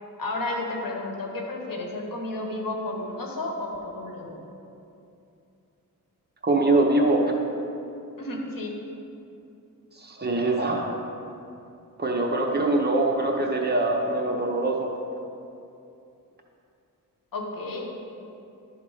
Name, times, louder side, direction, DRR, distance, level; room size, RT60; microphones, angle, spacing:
voice 1, 0.2-4.4 8.2-8.7 17.3-17.9, left 2 dB, 65° left, 0 dB, 1.2 m, -32 dB
voice 2, 6.4-7.2 10.0-10.9 12.0-14.9, right 2 dB, 30° right, 0 dB, 0.8 m, -23 dB
11.0 x 3.7 x 4.8 m, 2.7 s
wide cardioid pair, 125°, 36 cm